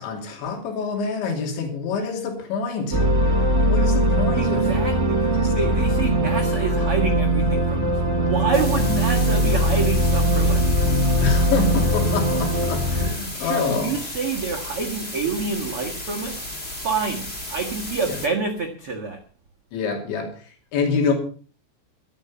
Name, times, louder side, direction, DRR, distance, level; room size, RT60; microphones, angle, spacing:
voice 1, 0.0-3.0 3.7-4.7 5.3-5.5 11.2-14.0 18.1-18.2 19.7-21.1, left 5 dB, 70° left, 3 dB, 5.1 m, -26 dB
Tragic Night Pad, 2.9-13.1, right 1 dB, 15° right, 4.6 m, -20 dB
voice 2, 4.4-10.7 13.3-16.4 16.8-19.2, right 5 dB, 85° right, -1 dB, 1.2 m, -28 dB
sound 1, 8.5-18.3, left 1 dB, 40° left, 0.8 m, -34 dB
13.5 x 12.5 x 5.7 m, 0.40 s
omnidirectional pair, 5.6 m